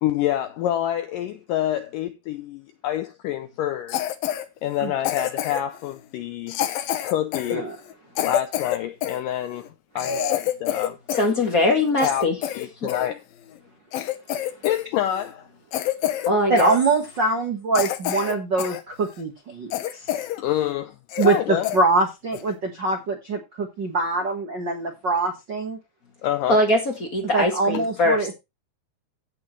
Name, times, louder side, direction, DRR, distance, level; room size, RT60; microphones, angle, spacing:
voice 1, 0.0-4.0 4.6-6.6 7.0-7.7 8.2-9.7 10.0-11.0 12.0-12.3 12.5-13.2 14.6-15.5 20.4-20.9 21.2-21.7 26.2-26.6, left 11 dB, 90° left, 1.9 m, -27 dB
Cough, 3.9-4.4 5.0-5.8 6.5-9.2 9.7-9.8 10.0-11.3 11.6-13.1 13.6-13.7 13.9-14.8 15.1-15.3 15.7-16.3 16.6-16.8 17.3-17.4 17.7-18.8 19.2-19.3 19.7-20.4 20.7-20.8 21.1-21.4 21.6-21.8 22.3-22.5, left 11 dB, 75° left, 2.6 m, -27 dB
voice 2, 11.2-12.4 12.8-12.9 16.2-16.7 26.5-28.3, left 1 dB, 45° left, 1.2 m, -21 dB
voice 3, 16.5-20.2 21.2-25.8 27.3-28.3, right 3 dB, 65° right, 1.1 m, -24 dB
16.0 x 6.0 x 3.2 m
omnidirectional pair, 4.6 m